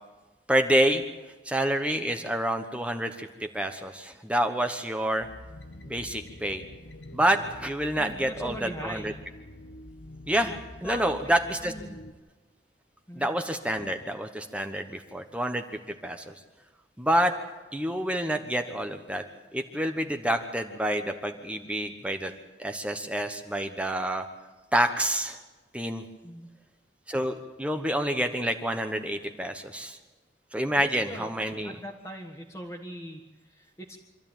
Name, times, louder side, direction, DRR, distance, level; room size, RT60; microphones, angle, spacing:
voice 1, 0.5-1.0 1.4-5.3 5.9-6.6 7.1-9.1 10.3-10.5 10.8-11.7 13.1-16.3 17.0-17.3 17.7-19.2 19.5-22.3 22.6-24.3 24.7-25.4 25.7-26.0 27.1-30.0 30.5-31.7, right 1 dB, 5° right, 5 dB, 1.0 m, -28 dB
sound 1, 5.2-12.1, left 1 dB, 85° left, 1.3 m, -47 dB
voice 2, 7.9-9.1 10.4-11.2 11.6-12.0 13.1-13.3 26.2-26.5 30.8-31.3 31.6-34.0, equal, 15° left, -1 dB, 1.6 m, -41 dB
25.5 x 13.5 x 9.0 m, 1.2 s
head